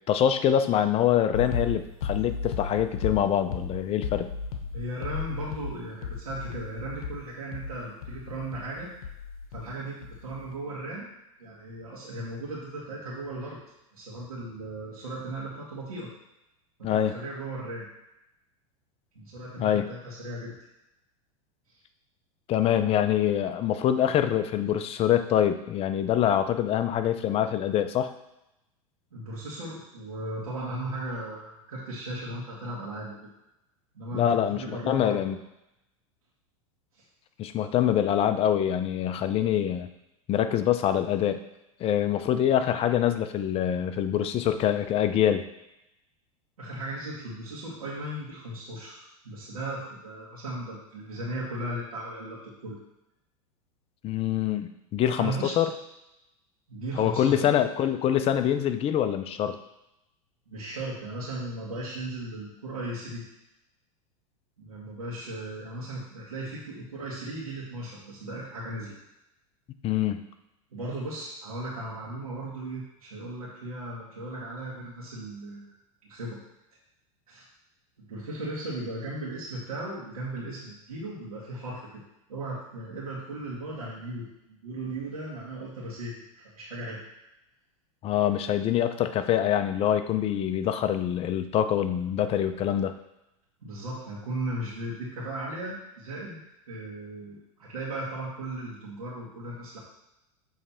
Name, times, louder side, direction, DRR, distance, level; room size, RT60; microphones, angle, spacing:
voice 1, 0.1-4.3 16.8-17.1 19.6-19.9 22.5-28.1 34.1-35.4 37.4-39.9 40.3-41.4 41.8-45.5 54.0-55.7 57.0-59.6 69.8-70.2 88.0-92.9, left 10 dB, 35° left, 9 dB, 0.5 m, -25 dB
sound 1, 1.3-9.8 10.0-10.6, left 5 dB, 80° left, 0.8 m, -35 dB
voice 2, 4.7-8.9 9.5-11.1 11.4-13.6 13.9-16.1 16.8-17.9 19.2-20.5 29.1-33.2 33.9-35.3 36.9-37.0 46.6-52.8 55.1-55.6 56.7-57.5 60.5-63.2 64.6-68.9 70.7-75.8 76.0-76.4 77.3-77.5 78.0-82.0 82.3-87.0 93.6-96.4 96.7-99.8, right 1 dB, 90° right, -8 dB, 1.7 m, -37 dB
7.5 x 3.3 x 4.3 m, 0.88 s
hypercardioid pair, 100°, 18 cm